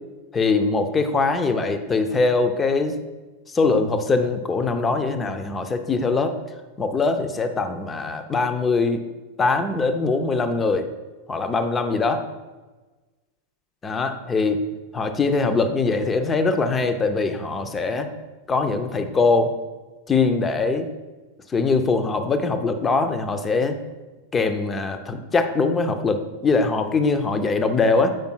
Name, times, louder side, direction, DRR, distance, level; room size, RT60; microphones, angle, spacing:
voice 1, 0.3-3.0 3.5-6.3 6.8-9.0 9.4-10.9 11.3-12.2 13.8-14.6 14.9-18.1 18.5-19.5 20.1-20.9 21.5-23.8 24.3-28.1, left 3 dB, 20° left, 7 dB, 0.6 m, -22 dB
7.7 x 5.2 x 4.5 m, 1.2 s
figure-of-eight pair, 90°, 0 cm